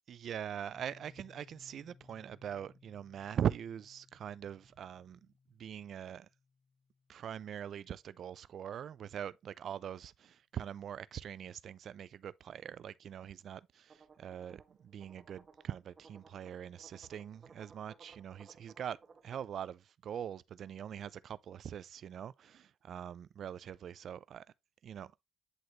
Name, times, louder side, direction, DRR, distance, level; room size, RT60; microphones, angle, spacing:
voice 1, 0.1-5.2 5.6-6.3 7.1-19.0 19.2-24.4 24.8-25.1, right 9 dB, 65° right, 0.4 m, -42 dB
Piano, 0.7-8.2, left 4 dB, ahead, 2.2 m, -64 dB
sound 1, 13.9-19.4, right 5 dB, 45° right, 1.8 m, -60 dB
9.6 x 3.9 x 3.1 m
cardioid pair, 90°, 0 cm